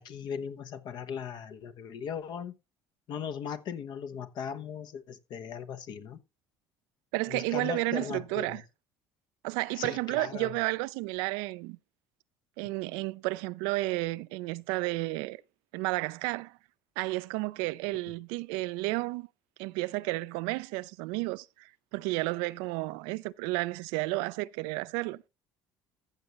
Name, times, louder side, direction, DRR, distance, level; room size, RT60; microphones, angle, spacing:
voice 1, 0.0-2.5 3.1-6.2 7.3-8.6 9.8-10.6, left 7 dB, 60° left, 1.1 m, -38 dB
voice 2, 7.1-8.6 9.4-11.8 12.6-15.4 15.7-16.5 17.0-19.3 19.6-25.2, right 22 dB, 80° right, 0.4 m, -32 dB
14.5 x 7.0 x 3.0 m
supercardioid pair, 85°, 8 cm